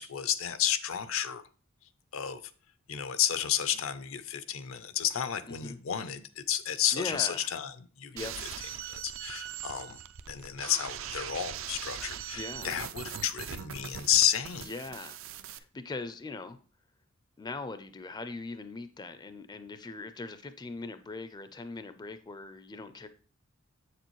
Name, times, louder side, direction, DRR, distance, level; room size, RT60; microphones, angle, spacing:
voice 1, 0.0-1.4 2.1-2.4 2.9-8.3 8.8-10.0 10.3-14.7, left 10 dB, 75° left, 13 dB, 0.6 m, -31 dB
voice 2, 6.9-7.5 8.1-8.4 12.3-12.7 14.6-16.6 17.4-23.1, left 3 dB, 20° left, 10 dB, 0.4 m, -40 dB
sound 1, 8.2-15.6, right 9 dB, 70° right, 0.5 m, -41 dB
7.6 x 6.7 x 3.1 m, 0.39 s
head